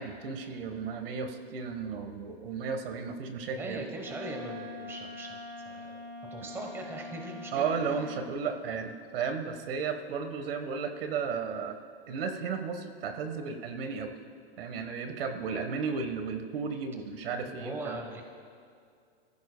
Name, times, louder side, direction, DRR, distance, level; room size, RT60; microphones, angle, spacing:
voice 1, 0.0-3.9 7.5-11.8 12.1-14.1 14.6-18.0, right 5 dB, 60° right, 6 dB, 1.4 m, -34 dB
voice 2, 3.5-5.4 5.6-6.0 6.3-7.7 17.4-18.2, right 1 dB, 10° right, 2 dB, 1.1 m, -40 dB
Wind instrument woodwind instrument, 4.0-8.4, left 2 dB, 80° right, 4.3 m, -43 dB
27.0 x 15.0 x 2.2 m, 2.3 s
hypercardioid pair, 155°, 32 cm